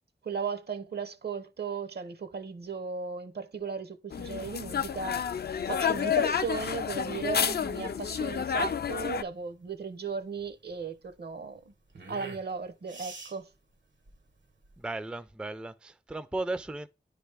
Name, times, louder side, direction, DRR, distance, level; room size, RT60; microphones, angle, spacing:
voice 1, 0.2-5.2 5.7-11.6 12.1-13.5, right 5 dB, 65° right, 0.7 m, -36 dB
sound 1, 4.1-9.2, left 7 dB, 65° left, 0.4 m, -30 dB
sound 2, 6.9-14.9, right 4 dB, 90° right, 1.2 m, -49 dB
voice 2, 14.8-16.9, right 2 dB, 5° right, 0.3 m, -35 dB
9.9 x 3.3 x 3.3 m
wide cardioid pair, 85°, 18 cm